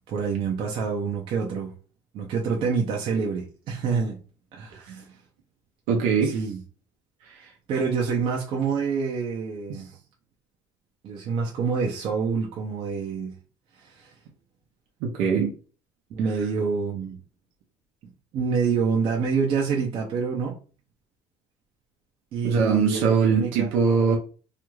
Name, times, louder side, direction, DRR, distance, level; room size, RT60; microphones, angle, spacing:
voice 1, 0.1-1.7 2.1-4.2 4.5-5.1 6.2-6.6 7.7-9.9 11.0-13.3 13.8-14.1 16.1-17.2 18.3-20.6 22.3-23.7, right 5 dB, 45° right, 0.5 m, -27 dB
voice 2, 5.9-6.4 7.2-7.5 9.7-9.8 15.0-15.5 22.4-24.2, right 5 dB, 85° right, 0.6 m, -22 dB
2.4 x 2.2 x 3.0 m
cardioid pair, 165°, 12 cm